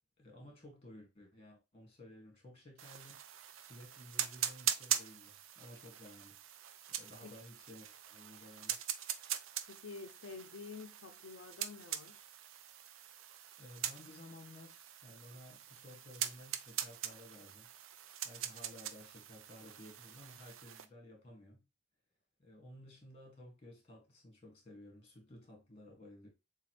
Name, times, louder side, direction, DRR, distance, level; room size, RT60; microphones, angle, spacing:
voice 1, 0.2-3.2 3.5-6.4 6.9-8.8 13.6-17.7 18.2-21.7 22.4-26.3, left 1 dB, 30° left, 1.9 m, -55 dB
sound 1, 2.8-20.9, right 10 dB, 85° right, 0.5 m, -42 dB
voice 2, 9.7-12.2, left 4 dB, 80° left, 0.5 m, -49 dB
6.8 x 2.4 x 3.1 m
head